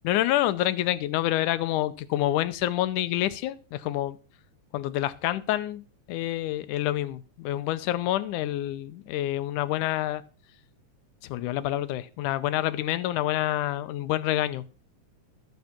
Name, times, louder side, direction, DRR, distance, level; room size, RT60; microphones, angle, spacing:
voice 1, 0.0-4.2 4.7-10.2 11.2-14.6, left 14 dB, 85° left, 14 dB, 2.2 m, -27 dB
12.0 x 8.0 x 5.8 m, 0.36 s
omnidirectional pair, 3.5 m